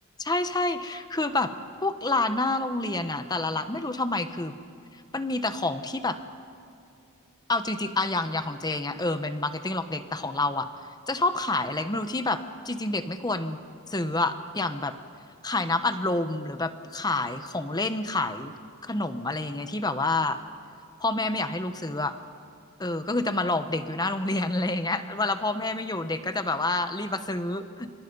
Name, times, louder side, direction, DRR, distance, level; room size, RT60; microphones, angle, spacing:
voice 1, 0.2-1.5 1.8-4.5 5.1-6.2 7.5-10.7 11.1-13.6 13.9-14.9 15.4-18.5 18.8-20.4 21.0-22.1 22.8-27.9, left 2 dB, 20° left, 9 dB, 1.1 m, -28 dB
27.5 x 25.5 x 5.5 m, 2.6 s
head